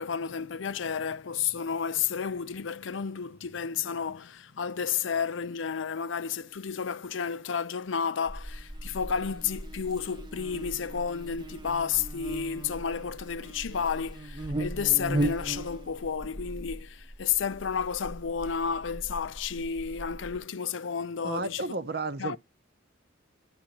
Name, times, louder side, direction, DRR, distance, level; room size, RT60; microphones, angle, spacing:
voice 1, 0.0-21.6 22.2-22.4, left 7 dB, 80° left, 0.6 m, -31 dB
Buzz, 8.3-20.4, right 1 dB, 25° right, 0.8 m, -37 dB
voice 2, 21.2-22.4, right 3 dB, 55° right, 0.8 m, -32 dB
11.5 x 5.0 x 2.9 m
head